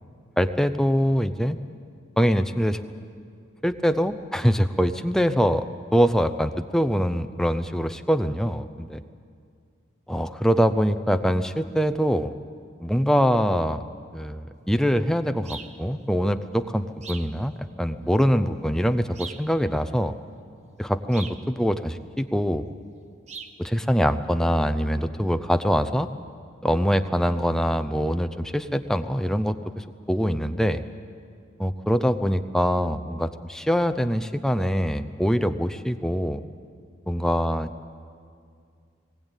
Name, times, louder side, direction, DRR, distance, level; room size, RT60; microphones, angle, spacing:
voice 1, 0.4-1.6 2.2-2.8 3.6-5.6 5.9-9.0 10.1-12.3 12.8-13.8 14.1-20.2 20.8-22.6 23.6-26.1 26.6-30.8 31.6-36.4 37.1-37.7, equal, 5° left, 9 dB, 0.5 m, -23 dB
sound 1, 15.4-15.8 17.0-17.4 19.1-19.5 21.1-21.4 23.3-23.6, right 5 dB, 35° right, 0.9 m, -39 dB
19.5 x 18.0 x 9.0 m, 2.3 s
head